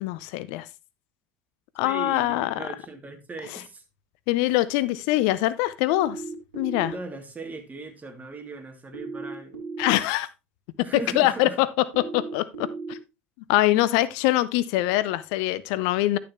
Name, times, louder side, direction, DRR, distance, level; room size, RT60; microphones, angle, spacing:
voice 1, 0.0-0.7 1.8-2.5 4.3-6.2 6.5-6.9 9.8-10.3 10.9-11.7 12.0-13.0 13.5-16.2, left 16 dB, 65° left, 0.6 m, -23 dB
voice 2, 1.8-3.8 4.3-4.6 6.9-9.6 10.8-11.6 13.7-13.9, right 2 dB, 25° right, 2.7 m, -38 dB
sound 1, 6.0-6.9 8.9-9.9 11.9-12.9, right 4 dB, 90° right, 2.3 m, -35 dB
11.5 x 6.8 x 3.0 m
hypercardioid pair, 65°, 7 cm